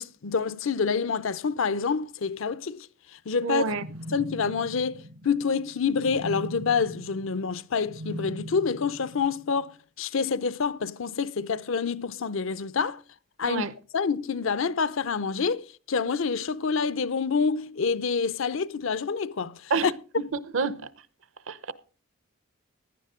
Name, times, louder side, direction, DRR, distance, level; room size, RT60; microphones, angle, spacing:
voice 1, 0.0-3.7 4.1-13.0 13.4-13.6 13.9-19.9, left 5 dB, 65° left, 0.6 m, -27 dB
voice 2, 3.4-3.9 13.4-13.7 19.7-19.9 20.5-20.8 21.5-21.7, right 4 dB, 65° right, 0.8 m, -27 dB
sound 1, 3.6-9.7, equal, 90° right, 5.3 m, -41 dB
16.0 x 11.0 x 3.7 m
head